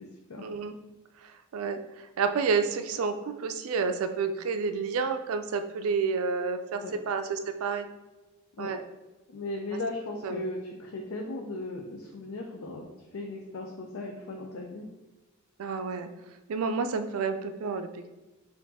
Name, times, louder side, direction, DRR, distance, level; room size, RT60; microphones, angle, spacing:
voice 1, 0.4-0.7 1.2-1.8 2.2-7.9 8.6-8.8 10.2-10.4 15.6-16.1 16.5-18.1, right 5 dB, 85° right, 8 dB, 0.4 m, -30 dB
voice 2, 9.3-14.9, left 2 dB, 70° left, 1 dB, 0.5 m, -37 dB
4.4 x 2.6 x 4.1 m, 1.1 s
head